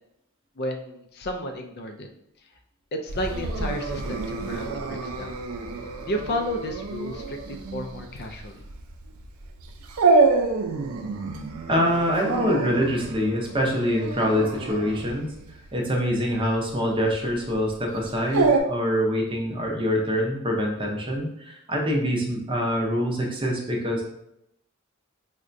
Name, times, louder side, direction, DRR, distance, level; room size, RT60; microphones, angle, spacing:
voice 1, 0.6-2.1 2.9-5.4 6.0-8.6, left 1 dB, 50° left, 5 dB, 0.4 m, -32 dB
Dog, 3.1-18.6, right 3 dB, 75° right, 0.4 m, -27 dB
voice 2, 11.7-15.3 15.7-24.0, equal, 25° right, 0 dB, 0.6 m, -25 dB
4.7 x 2.2 x 2.5 m, 0.79 s
head